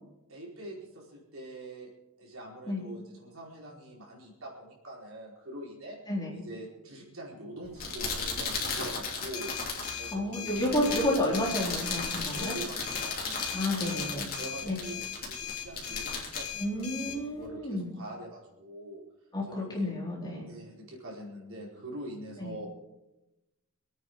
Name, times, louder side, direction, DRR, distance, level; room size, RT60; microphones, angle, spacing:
voice 1, 0.3-1.9 2.2-6.0 6.3-9.5 10.0-10.5 12.4-13.9 14.3-19.0 19.5-19.9 20.4-22.7, right 1 dB, 65° right, -3 dB, 4.7 m, -44 dB
sound 1, 7.6-17.5, left 4 dB, 40° left, 3.2 m, -36 dB
sound 2, 9.3-17.2, left 10 dB, 90° left, 2.1 m, -40 dB
voice 2, 10.1-12.5 13.5-14.3 14.6-14.8 16.6-17.9 19.3-20.5 22.4-22.5, left 1 dB, 20° left, -3 dB, 4.0 m, -31 dB
26.0 x 9.0 x 4.7 m, 0.94 s
head